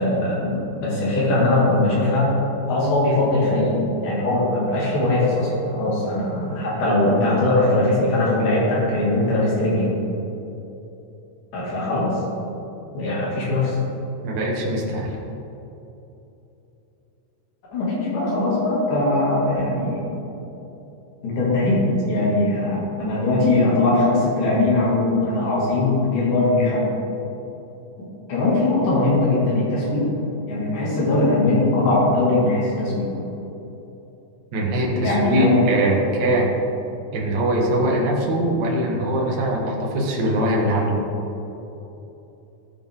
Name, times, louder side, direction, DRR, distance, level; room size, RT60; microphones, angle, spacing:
voice 1, 0.0-2.4 2.7-3.8 4.0-9.9 11.5-12.2 13.0-13.8 17.7-20.1 21.2-26.9 28.0-30.1 30.5-33.1 35.0-35.7 37.8-38.0, left 2 dB, 60° left, -6 dB, 3.6 m, -20 dB
voice 2, 14.2-15.2 34.5-36.5 37.1-41.0, right 1 dB, 70° right, -2 dB, 1.0 m, -22 dB
14.5 x 5.6 x 3.7 m, 3.0 s
omnidirectional pair, 4.1 m